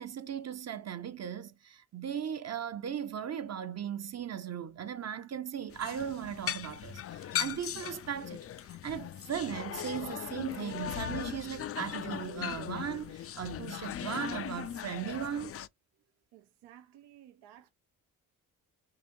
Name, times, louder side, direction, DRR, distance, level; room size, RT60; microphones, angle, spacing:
voice 1, 0.0-8.4 8.8-15.5, right 9 dB, 40° right, 0.8 m, -37 dB
sound 1, 5.7-15.7, left 10 dB, 35° left, 0.4 m, -38 dB
voice 2, 16.3-17.7, right 11 dB, 75° right, 0.7 m, -56 dB
5.0 x 2.5 x 2.6 m
supercardioid pair, 60°, 40 cm